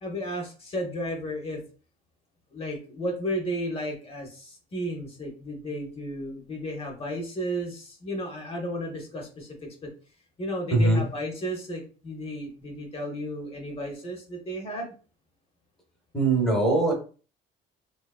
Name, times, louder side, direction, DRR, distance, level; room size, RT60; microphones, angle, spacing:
voice 1, 0.0-1.6 2.5-9.9 10.4-14.9, equal, 35° left, 1 dB, 0.9 m, -33 dB
voice 2, 10.7-11.0 16.1-16.9, right 2 dB, ahead, 0 dB, 0.9 m, -21 dB
2.8 x 2.4 x 2.3 m, 0.36 s
cardioid pair, 110°, 17 cm